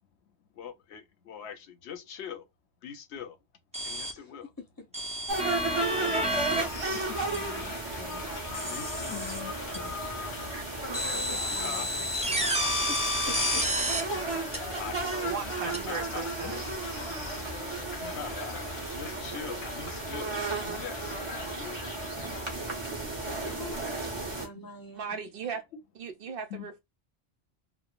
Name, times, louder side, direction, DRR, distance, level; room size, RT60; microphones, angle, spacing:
voice 1, 0.2-2.4 2.8-3.4 3.8-4.5 5.8-7.2 8.7-10.2 10.6-10.7 11.5-11.9 14.8-15.3 15.6-16.6 17.9-22.1 23.4-24.2 26.5-26.8, left 8 dB, 90° left, 1.0 m, -43 dB
sound 1, 3.7-4.1 4.9-6.6 7.3-7.4 8.5-9.4 9.7-9.8 10.9-14.0 14.5-14.6 15.7-15.8, equal, 10° right, 0.5 m, -30 dB
voice 2, 4.2-4.9 7.2-9.2 11.1-12.6 12.9-13.0 13.3-13.7 22.2-22.3 23.8-23.9 24.4-25.2, left 2 dB, 20° left, 0.8 m, -46 dB
sound 2, 5.3-24.5, right 3 dB, 25° right, 1.0 m, -34 dB
sound 3, 5.6-22.7, left 5 dB, 50° left, 0.5 m, -43 dB
voice 3, 15.3-16.6 25.0-25.6 26.0-26.8, right 6 dB, 65° right, 0.7 m, -37 dB
3.2 x 2.1 x 2.4 m
omnidirectional pair, 1.1 m